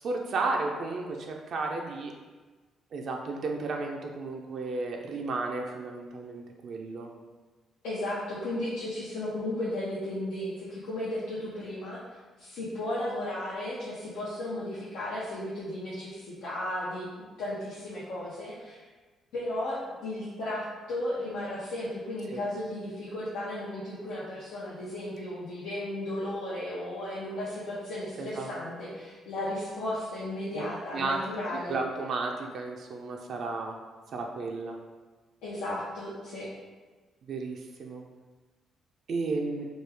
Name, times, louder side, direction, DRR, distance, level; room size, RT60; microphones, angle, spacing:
voice 1, 0.0-2.1 2.9-7.1 22.3-22.4 28.2-28.5 30.5-30.6 30.9-31.2 31.5-33.8 34.1-34.8 37.3-38.0 39.1-39.7, right 3 dB, 60° right, 1 dB, 0.3 m, -33 dB
voice 2, 7.8-12.0 12.4-17.1 17.4-18.8 19.3-31.8 35.4-36.5, left 1 dB, 90° left, -9 dB, 0.7 m, -34 dB
3.1 x 2.3 x 3.3 m, 1.3 s
cardioid pair, 90°, 0 cm